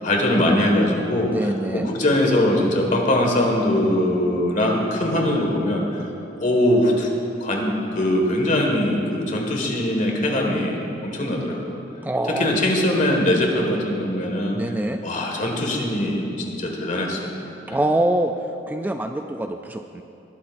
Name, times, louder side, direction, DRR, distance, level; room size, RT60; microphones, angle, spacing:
voice 1, 0.0-6.0 6.4-7.1 7.4-11.8 12.3-14.6 15.0-17.3 17.7-17.8, left 1 dB, 45° left, 1 dB, 1.7 m, -21 dB
voice 2, 1.3-1.9 12.0-12.6 14.5-15.0 17.7-18.3 18.7-20.0, right 1 dB, 10° right, 6 dB, 0.3 m, -24 dB
20.0 x 12.0 x 2.6 m, 2.7 s
head